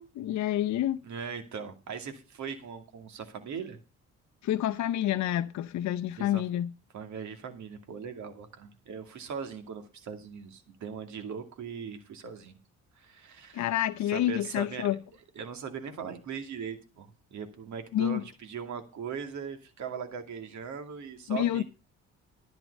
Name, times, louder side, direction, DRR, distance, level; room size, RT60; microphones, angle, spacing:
voice 1, 0.0-1.0 4.4-6.7 13.5-15.0 17.9-18.2 21.3-21.6, left 12 dB, 65° left, 0.6 m, -28 dB
voice 2, 1.0-3.8 6.2-6.4 6.9-12.6 13.0-13.7 14.1-14.9 15.3-21.6, right 6 dB, 70° right, 2.4 m, -39 dB
11.0 x 9.3 x 5.3 m
cardioid pair, 90°, 30 cm